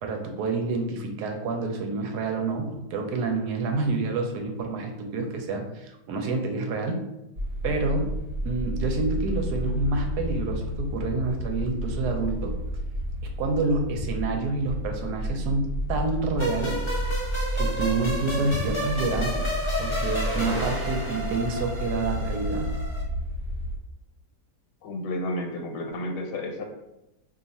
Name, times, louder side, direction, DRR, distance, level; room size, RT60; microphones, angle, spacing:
voice 1, 0.0-7.0 7.6-8.1 8.4-12.5 13.4-16.8 17.5-19.5 19.8-22.7, right 3 dB, 75° right, 4 dB, 1.1 m, -28 dB
sound 1, 7.4-23.8, equal, 50° right, 0.9 m, -31 dB
sound 2, 16.4-23.0, equal, 50° left, 0.3 m, -32 dB
voice 2, 24.8-26.6, left 1 dB, 80° left, 3 dB, 1.3 m, -31 dB
2.7 x 2.3 x 4.0 m, 0.89 s
omnidirectional pair, 1.8 m